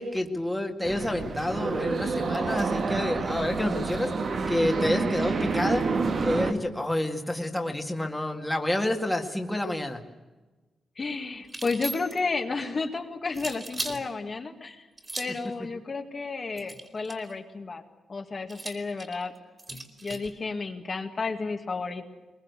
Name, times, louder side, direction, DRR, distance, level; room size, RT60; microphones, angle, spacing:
voice 1, 0.0-4.1 4.5-5.9 6.2-10.0, left 1 dB, 5° left, 3 dB, 2.0 m, -28 dB
sound 1, 0.8-6.5, right 4 dB, 50° right, 1.9 m, -28 dB
voice 2, 11.0-14.9 15.2-17.8 18.1-19.3 20.0-22.1, left 4 dB, 35° left, 4 dB, 1.9 m, -32 dB
sound 2, 11.4-12.3 13.3-14.0 15.0-15.5 16.6-17.3 18.5-20.3, right 2 dB, 25° right, 3.2 m, -38 dB
22.5 x 21.5 x 8.3 m, 1.2 s
wide cardioid pair, 135°, 0 cm